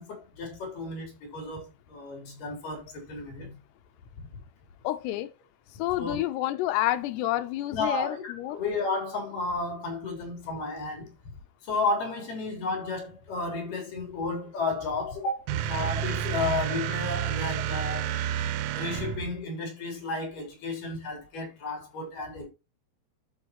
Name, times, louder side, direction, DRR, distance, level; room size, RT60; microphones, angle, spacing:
voice 1, 0.0-3.6 4.3-4.4 6.0-6.2 7.7-11.3 11.6-18.2 18.7-22.5, left 3 dB, 45° left, 4.6 m, -33 dB
voice 2, 4.8-5.3 5.8-8.6, left 15 dB, 85° left, 2.3 m, -29 dB
sound 1, 15.5-19.4, right 10 dB, 85° right, 3.2 m, -30 dB
12.5 x 5.0 x 2.9 m
omnidirectional pair, 5.5 m